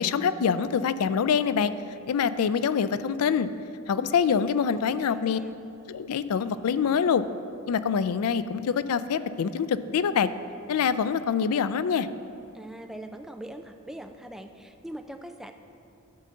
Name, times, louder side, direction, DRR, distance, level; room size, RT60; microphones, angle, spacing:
voice 1, 0.0-1.7 2.1-3.5 3.9-5.4 5.9-7.2 7.7-10.3 10.7-12.1, left 6 dB, 90° left, 14 dB, 0.4 m, -25 dB
voice 2, 4.8-5.5 12.5-15.5, right 1 dB, ahead, 5 dB, 0.4 m, -42 dB
11.5 x 3.8 x 7.6 m, 2.6 s
head